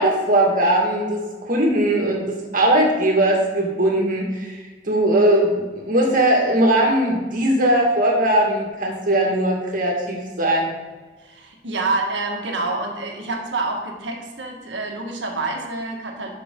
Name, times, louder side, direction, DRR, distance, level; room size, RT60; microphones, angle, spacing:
voice 1, 0.0-10.7, right 1 dB, 50° right, 0 dB, 2.0 m, -19 dB
voice 2, 11.2-16.3, right 3 dB, 85° right, 1 dB, 1.7 m, -27 dB
11.0 x 6.9 x 3.8 m, 1.3 s
head